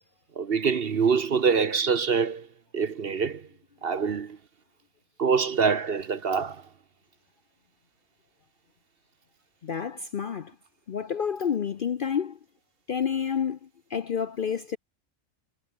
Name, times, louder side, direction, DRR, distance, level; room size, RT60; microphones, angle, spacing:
voice 1, 0.4-2.5 2.7-3.4 3.8-4.4 5.2-6.6, right 6 dB, 50° right, 1.1 m, -25 dB
voice 2, 9.6-10.5 10.9-12.4 12.9-13.6 13.9-14.8, left 7 dB, 50° left, 0.7 m, -29 dB
omnidirectional pair, 1.4 m